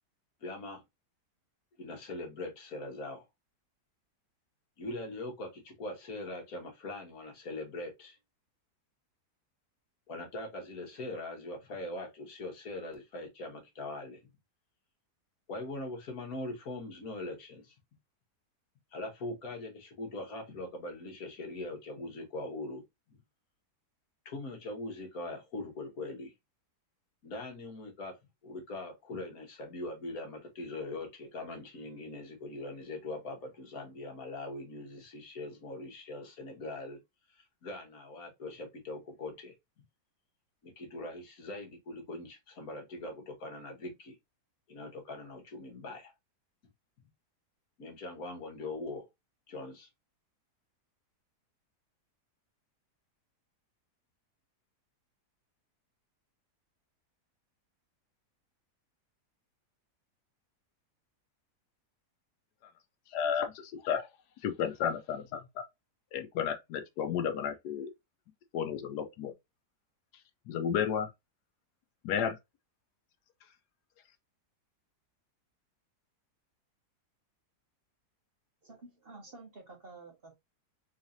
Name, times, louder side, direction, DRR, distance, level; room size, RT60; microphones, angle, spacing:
voice 1, 0.4-0.8 1.8-3.2 4.8-8.2 10.1-14.3 15.5-17.7 18.9-23.2 24.2-26.3 27.2-28.2 28.4-37.0 37.3-39.5 40.6-44.2 44.7-46.1 47.8-49.0 49.5-49.9, left 2 dB, 65° left, 1.6 m, -41 dB
voice 2, 63.1-64.1 64.4-65.6 66.1-67.9 68.5-69.3 70.5-71.1 72.0-72.4, left 8 dB, 80° left, 1.2 m, -32 dB
voice 3, 78.6-80.4, right 3 dB, 40° right, 1.1 m, -50 dB
4.0 x 3.2 x 2.6 m
omnidirectional pair, 1.7 m